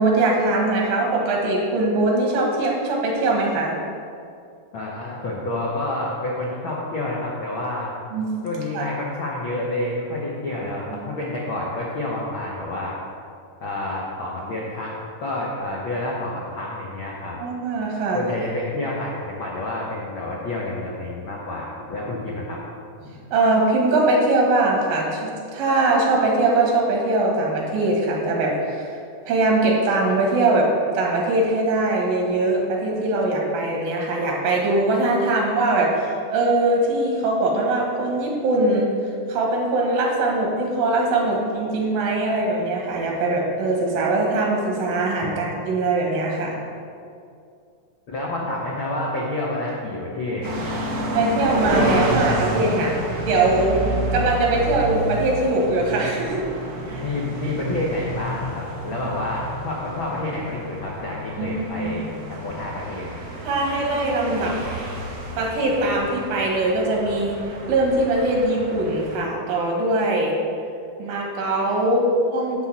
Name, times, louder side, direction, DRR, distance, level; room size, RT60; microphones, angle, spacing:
voice 1, 0.0-3.7 8.1-8.3 8.7-8.9 10.9-11.0 17.4-18.2 23.0-28.9 29.3-30.7 30.9-38.9 39.3-46.6 51.1-52.9 53.3-53.8 54.1-56.5 56.9-57.0 61.4-61.9 63.4-64.6 65.4-67.4 67.7-70.4 71.0-72.7, right 2 dB, 90° right, -1 dB, 3.3 m, -21 dB
voice 2, 4.7-7.9 8.4-12.9 13.6-17.4 18.1-22.6 45.2-45.3 48.1-50.8 57.0-63.1, left 2 dB, 75° left, -4 dB, 1.1 m, -29 dB
sound 1, 50.4-69.2, right 1 dB, 55° right, 1.1 m, -30 dB
10.0 x 4.2 x 7.4 m, 2.4 s
omnidirectional pair, 3.9 m